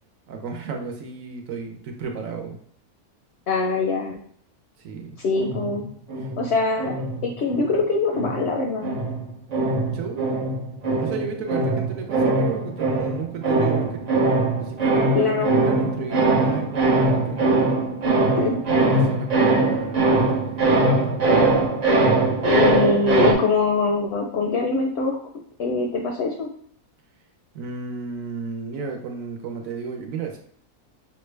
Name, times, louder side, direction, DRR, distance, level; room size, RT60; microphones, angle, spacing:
voice 1, 0.3-2.6 4.8-5.2 6.2-6.3 9.9-10.3 11.0-14.0 14.6-17.5 18.8-20.0 20.5-20.8 21.0-21.1 27.5-30.4, right 5 dB, 65° right, 3 dB, 1.1 m, -33 dB
voice 2, 3.5-4.2 5.2-5.9 6.4-6.9 7.2-8.9 15.1-15.5 18.4-18.6 22.4-25.2 25.6-26.5, left 4 dB, 60° left, 2 dB, 0.7 m, -23 dB
sound 1, 5.4-7.7 8.1-23.3, right 2 dB, 50° right, 0.4 m, -22 dB
5.8 x 2.2 x 3.2 m, 0.63 s
omnidirectional pair, 1.6 m